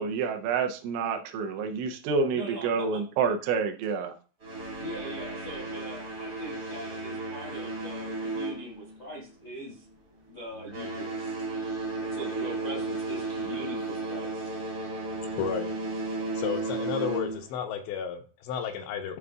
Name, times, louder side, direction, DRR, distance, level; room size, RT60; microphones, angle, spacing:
voice 1, 0.0-4.1, right 5 dB, 85° right, 5 dB, 3.0 m, -28 dB
voice 2, 2.3-3.0 4.8-9.8 10.3-11.4 12.0-14.5, equal, 60° left, -5 dB, 1.0 m, -41 dB
sound 1, 4.4-9.3 9.6-9.9 10.5-17.6, right 2 dB, 50° right, 1.0 m, -34 dB
voice 3, 15.4-15.7 16.3-19.2, left 7 dB, 85° left, 5 dB, 2.9 m, -32 dB
10.5 x 3.7 x 2.3 m, 0.37 s
omnidirectional pair, 5.2 m